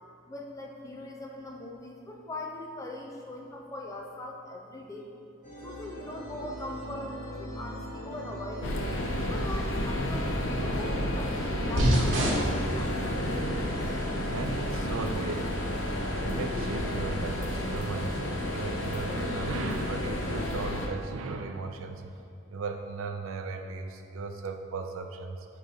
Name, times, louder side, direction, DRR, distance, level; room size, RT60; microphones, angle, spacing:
voice 1, 0.2-5.1 5.6-8.8 9.2-13.4, left 1 dB, 15° left, 0 dB, 0.4 m, -41 dB
sound 1, 5.4-16.8, equal, 35° left, 1.3 m, -41 dB
sound 2, 8.6-20.9, left 1 dB, 65° left, 0.6 m, -31 dB
sound 3, 11.8-20.5, equal, 65° right, 1.0 m, -34 dB
voice 2, 14.3-15.8 16.2-22.2 22.5-25.5, right 4 dB, 80° right, 6 dB, 0.4 m, -36 dB
8.6 x 4.6 x 2.8 m, 2.5 s
head